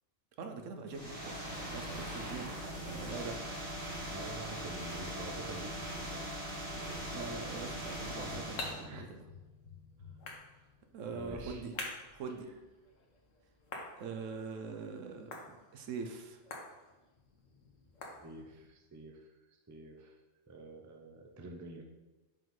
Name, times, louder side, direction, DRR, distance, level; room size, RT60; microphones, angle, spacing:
voice 1, 0.4-2.5 2.8-3.4 7.1-9.2 10.9-11.7 12.1-12.5 14.0-15.4 15.7-16.4, right 4 dB, 80° right, 5 dB, 1.1 m, -43 dB
sound 1, 0.9-8.8, equal, 55° right, 2.4 m, -41 dB
voice 2, 1.6-2.0 4.1-7.3 8.8-9.0 11.1-11.6 15.5-15.6 18.2-19.3 19.7-20.2 20.5-21.8, right 2 dB, 25° right, 2 dB, 0.4 m, -48 dB
sound 2, 7.8-18.7, left 2 dB, 80° left, 1.4 m, -49 dB
sound 3, 8.2-11.6 12.1-12.2, left 5 dB, 25° left, 1.4 m, -53 dB
5.4 x 5.3 x 3.8 m, 1.1 s
omnidirectional pair, 1.3 m